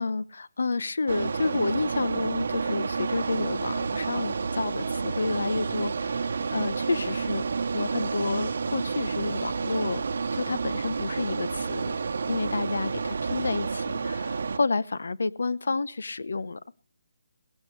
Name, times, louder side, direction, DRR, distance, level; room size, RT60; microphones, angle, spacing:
voice 1, 0.0-7.4 7.7-10.0 10.3-12.0 12.3-16.6, left 3 dB, 85° left, 0.8 m, -30 dB
sound 1, 1.1-14.6, right 5 dB, 65° right, 0.9 m, -30 dB
17.5 x 16.0 x 3.2 m
hypercardioid pair, 170°, 0 cm